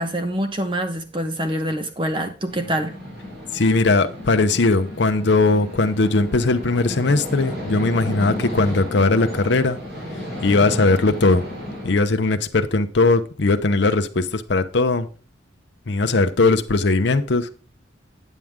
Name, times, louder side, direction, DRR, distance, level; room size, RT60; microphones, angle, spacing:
voice 1, 0.0-2.9, right 1 dB, 25° right, 7 dB, 1.0 m, -25 dB
sound 1, 2.5-11.9, left 1 dB, 55° right, 4.3 m, -33 dB
voice 2, 3.5-9.8 10.4-11.4 11.8-15.1 15.9-17.5, left 3 dB, 65° left, 8 dB, 0.7 m, -19 dB
9.1 x 7.5 x 3.6 m, 0.37 s
head